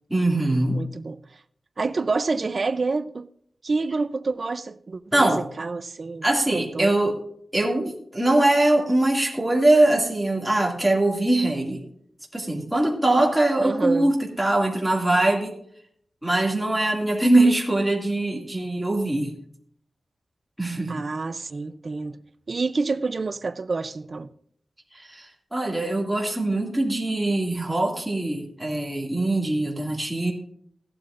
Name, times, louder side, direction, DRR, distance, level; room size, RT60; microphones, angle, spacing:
voice 1, 0.1-0.9 5.1-5.4 6.2-7.2 7.5-11.8 12.3-15.5 16.2-19.3 20.6-21.0 24.9-30.3, right 2 dB, 5° right, 2.1 m, -22 dB
voice 2, 0.7-1.2 1.8-3.3 3.6-6.3 6.5-7.0 13.6-14.1 20.9-22.2 22.5-24.3, right 3 dB, 45° right, 0.5 m, -28 dB
15.5 x 11.5 x 2.5 m
wide cardioid pair, 145°, 0 cm